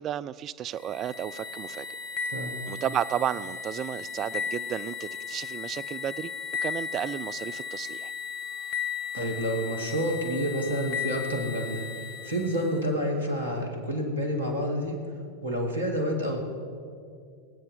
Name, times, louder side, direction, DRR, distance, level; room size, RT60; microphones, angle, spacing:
voice 1, 0.0-1.9 2.7-6.3 6.6-8.1, right 10 dB, 30° right, 14 dB, 0.4 m, -32 dB
sound 1, 0.8-12.9, left 6 dB, 45° left, 1.1 m, -36 dB
voice 2, 2.3-2.6 9.1-15.0 15.4-16.4, equal, 75° right, 2 dB, 2.3 m, -29 dB
23.5 x 8.8 x 3.9 m, 2.2 s
figure-of-eight pair, 90°, 0 cm